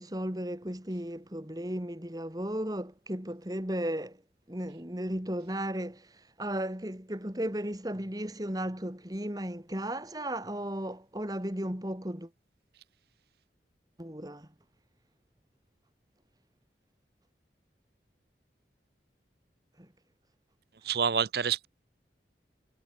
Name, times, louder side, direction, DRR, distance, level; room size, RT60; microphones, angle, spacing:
voice 1, 0.0-4.2 4.5-12.3 14.0-14.5 19.8-19.9, right 1 dB, 20° right, 2.3 m, -35 dB
voice 2, 20.9-21.7, right 7 dB, 60° right, 0.6 m, -27 dB
head